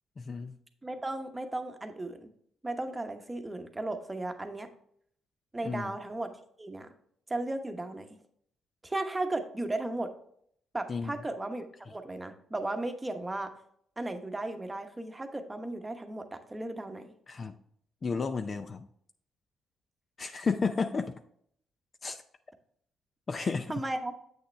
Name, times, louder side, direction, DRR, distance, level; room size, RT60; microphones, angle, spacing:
voice 1, 0.2-0.5 5.6-5.9 10.9-11.1 17.3-17.6 18.0-18.9 20.2-21.2 22.0-22.2 23.3-23.7, left 4 dB, 40° left, 8 dB, 0.5 m, -32 dB
voice 2, 0.8-2.3 2.6-4.7 5.5-6.3 6.6-6.9 7.3-8.1 8.8-10.1 10.7-13.5 14.0-17.0 23.3-24.2, right 2 dB, 15° right, 6 dB, 1.0 m, -35 dB
8.0 x 6.4 x 3.3 m, 0.66 s
cardioid pair, 90°, 0 cm